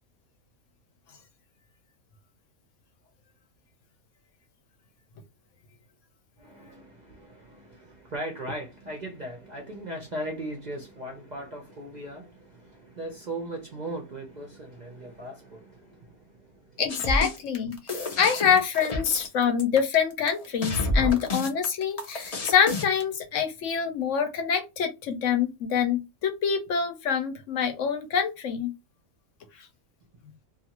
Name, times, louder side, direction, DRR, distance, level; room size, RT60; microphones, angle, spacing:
voice 1, 6.4-16.8, right 1 dB, 45° right, 0.6 m, -38 dB
voice 2, 16.8-17.8 18.2-28.7, left 7 dB, 65° left, 1.0 m, -25 dB
sound 1, 16.9-23.0, left 2 dB, 45° left, 0.5 m, -29 dB
2.6 x 2.5 x 2.8 m
omnidirectional pair, 1.5 m